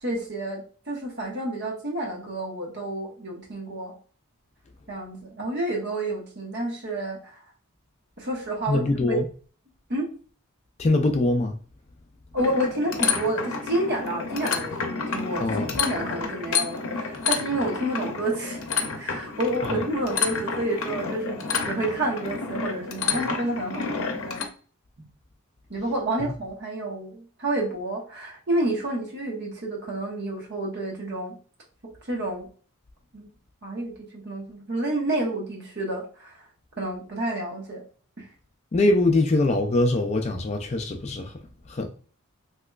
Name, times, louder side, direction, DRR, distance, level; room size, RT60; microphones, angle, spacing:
voice 1, 0.0-3.9 4.9-7.3 8.2-8.8 9.1-9.2 9.9-10.1 12.3-18.6 19.0-24.4 25.7-31.4 32.1-32.5 33.1-33.3 33.6-36.3 36.8-37.8 38.2-38.3, right 1 dB, 50° right, 1.0 m, -29 dB
voice 2, 8.7-9.3 10.8-11.6 15.4-15.8 19.6-19.8 26.2-26.3 38.7-41.4 41.7-41.9, left 2 dB, 30° left, 0.3 m, -23 dB
sound 1, 12.4-24.4, left 5 dB, 70° left, 0.6 m, -30 dB
3.4 x 2.9 x 2.3 m
head